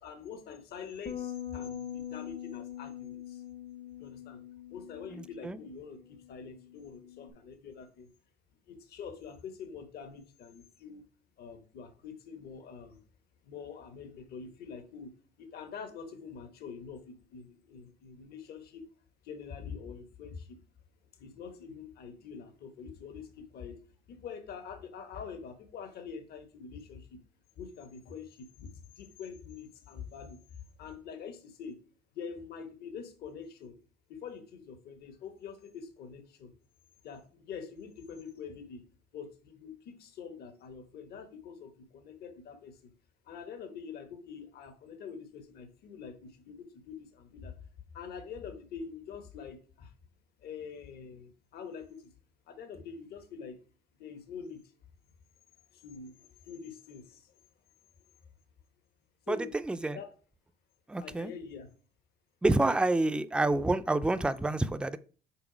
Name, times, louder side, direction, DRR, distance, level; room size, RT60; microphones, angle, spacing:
voice 1, 0.0-3.4 4.0-4.4 4.7-8.1 8.7-11.0 11.4-13.0 13.4-15.1 15.4-18.9 19.2-20.6 21.1-23.8 24.1-27.2 27.6-31.8 32.1-33.7 34.1-36.5 37.0-38.8 39.1-42.9 43.2-47.5 47.9-49.9 50.4-52.1 52.5-53.6 54.0-54.6 55.7-57.4 59.3-59.5 59.9-60.2 61.0-61.7, left 6 dB, 70° left, 1.2 m, -45 dB
sound 1, 1.1-7.3, left 10 dB, 45° left, 0.8 m, -43 dB
voice 2, 59.7-60.0 60.9-61.3 62.4-65.0, right 2 dB, 5° right, 0.4 m, -27 dB
6.1 x 3.9 x 5.0 m
cardioid pair, 110°, 17 cm